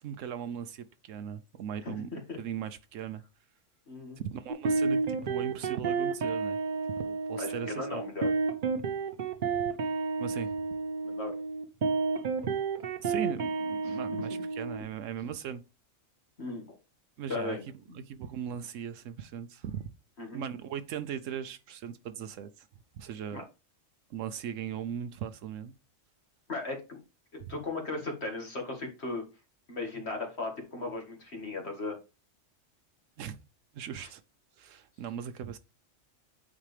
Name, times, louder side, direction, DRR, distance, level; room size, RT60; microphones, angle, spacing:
voice 1, 0.0-3.2 4.2-6.6 7.0-8.0 10.2-10.7 13.0-15.6 17.2-17.6 17.9-19.9 20.3-22.7 22.9-23.4 24.1-25.7 27.4-27.5 33.2-33.4 33.7-34.2 34.6-35.6, right 8 dB, 85° right, 1.0 m, -38 dB
voice 2, 1.8-2.4 3.9-4.2 7.3-8.3 11.0-11.3 13.9-14.2 16.4-16.7 17.3-17.6 20.2-20.5 23.3-23.4 26.5-27.0 27.3-29.3 29.7-32.0 34.0-34.1, left 3 dB, 60° left, 1.9 m, -37 dB
sound 1, 4.5-14.8, right 4 dB, 50° right, 0.8 m, -31 dB
8.7 x 4.2 x 3.3 m
omnidirectional pair, 1.3 m